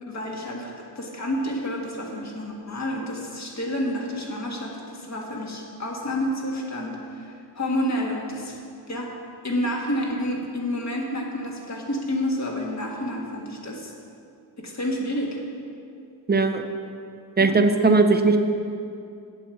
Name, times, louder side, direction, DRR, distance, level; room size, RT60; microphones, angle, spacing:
voice 1, 0.0-8.6 8.9-9.1 9.4-13.9 14.6-15.4 17.4-17.6, left 1 dB, 40° left, 0 dB, 1.6 m, -29 dB
voice 2, 16.3-16.6 17.4-18.4, right 3 dB, 25° right, 7 dB, 0.6 m, -18 dB
9.1 x 8.5 x 7.1 m, 2.5 s
wide cardioid pair, 175°, 43 cm